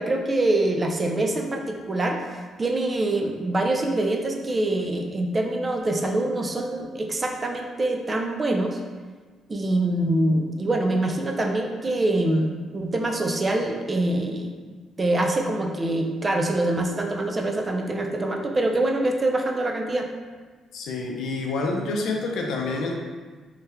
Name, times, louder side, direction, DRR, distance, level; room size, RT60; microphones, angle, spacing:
voice 1, 0.0-8.8 9.5-14.5 15.0-20.1, right 1 dB, 30° right, 2 dB, 0.4 m, -25 dB
voice 2, 20.7-23.0, left 3 dB, 75° left, 1 dB, 0.4 m, -28 dB
3.2 x 2.1 x 3.4 m, 1.4 s
cardioid pair, 90°, 0 cm